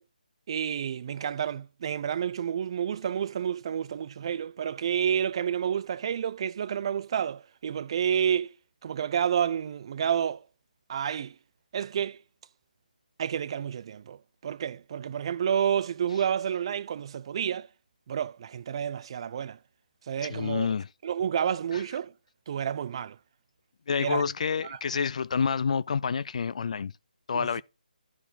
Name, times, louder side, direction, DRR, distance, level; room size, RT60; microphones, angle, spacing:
voice 1, 0.5-8.5 8.8-10.4 10.9-11.3 11.7-12.2 13.2-17.7 18.1-19.6 20.1-20.7 21.0-22.1 22.5-23.2 24.0-24.2 24.6-24.8 27.3-27.5, right 8 dB, 35° right, 0.5 m, -30 dB
voice 2, 20.3-20.9 21.7-21.8 23.9-26.9 27.3-27.6, left 6 dB, 50° left, 0.3 m, -28 dB
12.0 x 4.6 x 4.1 m
figure-of-eight pair, 160°, 5 cm